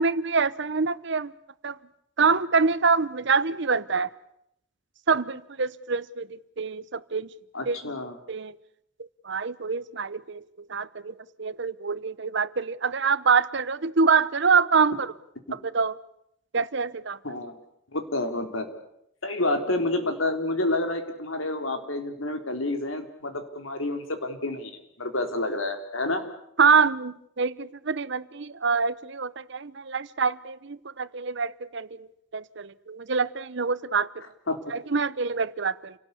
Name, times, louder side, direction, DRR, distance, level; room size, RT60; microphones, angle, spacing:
voice 1, 0.0-1.3 1.6-1.8 2.2-4.1 5.1-6.3 6.6-7.3 7.7-7.8 8.3-8.6 9.0-10.4 10.7-15.1 15.5-16.0 16.5-17.2 26.6-32.1 32.3-34.1 34.7-35.9, right 5 dB, 60° right, 0.9 m, -25 dB
voice 2, 7.5-8.2 15.5-15.6 17.2-17.5 17.9-18.7 19.2-24.7 25.0-26.2 34.5-34.6, left 2 dB, 90° left, 3.7 m, -29 dB
28.5 x 18.5 x 8.4 m
head